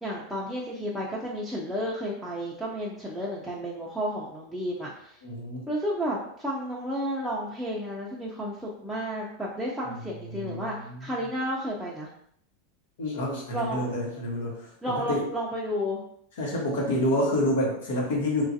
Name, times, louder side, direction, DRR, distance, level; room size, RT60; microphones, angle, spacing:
voice 1, 0.0-5.2 5.7-10.7 11.0-12.1 13.5-13.8 14.8-16.0, equal, ahead, -6 dB, 0.4 m, -32 dB
voice 2, 5.2-5.6 10.3-10.8 13.0-15.2 16.4-18.4, left 1 dB, 90° left, -2 dB, 1.1 m, -28 dB
3.0 x 2.4 x 2.6 m, 0.67 s
supercardioid pair, 145°, 0 cm